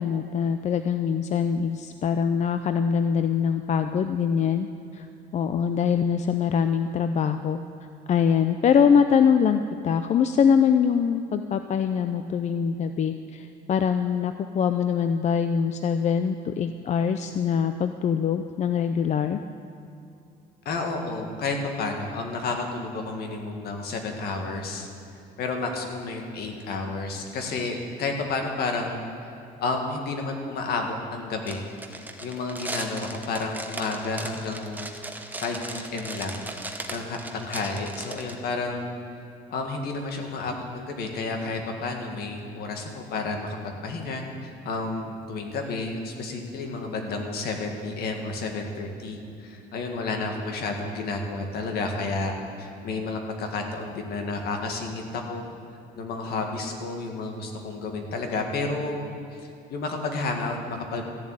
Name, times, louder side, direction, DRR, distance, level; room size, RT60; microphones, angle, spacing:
voice 1, 0.0-4.7 4.9-5.1 5.3-7.6 8.1-19.4, left 7 dB, 45° left, 9 dB, 0.5 m, -23 dB
voice 2, 20.7-24.9 25.4-29.0 29.6-31.6 32.2-34.9 35.4-36.4 36.9-38.9 39.5-52.3 52.6-55.4 56.0-59.1 59.7-61.0, left 3 dB, 70° left, 3 dB, 1.9 m, -31 dB
sound 1, 31.5-38.4, right 2 dB, 10° right, 1.1 m, -37 dB
14.0 x 7.3 x 8.8 m, 2.7 s
cardioid pair, 110°, 17 cm